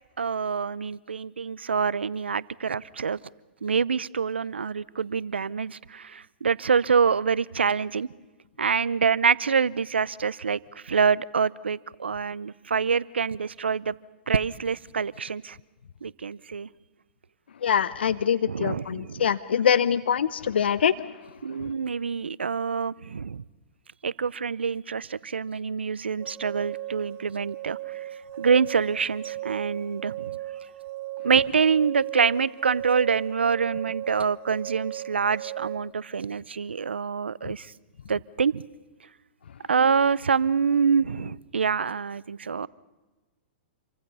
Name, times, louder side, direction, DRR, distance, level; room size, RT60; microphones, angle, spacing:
voice 1, 0.2-3.2 3.6-8.1 8.6-13.9 14.3-15.6 16.0-16.7 18.5-19.3 21.4-23.4 24.0-27.8 28.4-30.3 31.2-37.7 38.1-38.6 39.7-42.7, right 6 dB, 90° right, 22 dB, 0.7 m, -26 dB
voice 2, 17.6-21.0, left 8 dB, 75° left, 17 dB, 0.8 m, -24 dB
sound 1, 26.2-35.8, right 15 dB, 50° right, 4.2 m, -36 dB
28.5 x 24.0 x 5.6 m, 1.2 s
hypercardioid pair, 120°, 6 cm